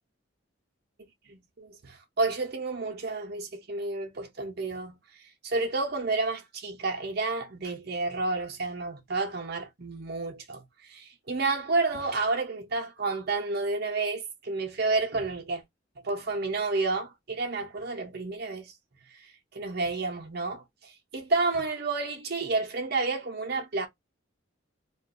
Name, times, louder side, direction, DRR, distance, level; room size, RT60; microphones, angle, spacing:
voice 1, 1.3-15.6 16.0-18.7 19.1-23.9, right 3 dB, 50° right, 0.7 m, -30 dB
2.5 x 2.3 x 3.7 m
head